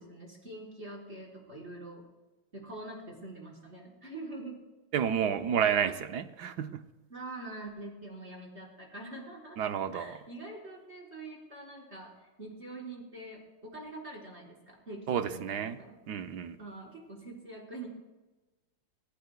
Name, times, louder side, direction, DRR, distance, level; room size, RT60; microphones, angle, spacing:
voice 1, 0.0-2.0 2.5-4.6 7.1-9.6 9.9-16.0 16.6-17.9, right 2 dB, 30° right, -2 dB, 5.0 m, -44 dB
voice 2, 4.9-6.8 9.6-10.2 15.1-15.8 16.1-16.6, right 8 dB, 65° right, 8 dB, 1.0 m, -30 dB
22.0 x 22.0 x 2.2 m, 1.1 s
omnidirectional pair, 2.3 m